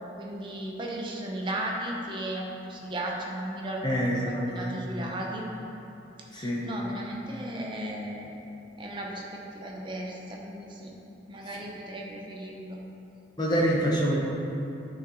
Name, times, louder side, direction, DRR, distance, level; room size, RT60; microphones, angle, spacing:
voice 1, 0.2-5.5 6.3-8.4 8.8-10.9 11.3-12.8, right 1 dB, 25° right, -1 dB, 0.8 m, -36 dB
voice 2, 3.8-4.7 6.3-6.7 13.4-14.1, equal, 20° left, -4 dB, 1.0 m, -26 dB
8.8 x 5.9 x 3.1 m, 2.9 s
head